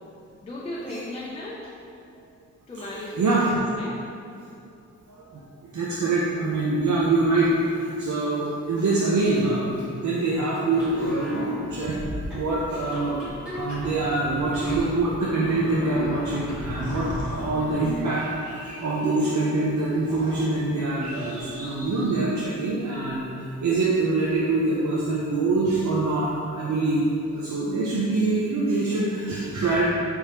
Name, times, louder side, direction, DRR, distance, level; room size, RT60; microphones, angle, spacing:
voice 1, 0.4-1.7 2.7-3.3 3.7-4.1, left 1 dB, 20° left, -6 dB, 0.4 m, -35 dB
voice 2, 2.9-3.6 5.1-12.0 12.3-13.2 13.5-29.8, right 2 dB, 75° right, -6 dB, 0.6 m, -25 dB
sound 1, 10.7-18.0, equal, 5° right, 1.1 m, -34 dB
sound 2, 16.3-22.6, right 1 dB, 25° right, 1.0 m, -44 dB
4.6 x 3.5 x 2.8 m, 2.5 s
wide cardioid pair, 175°, 29 cm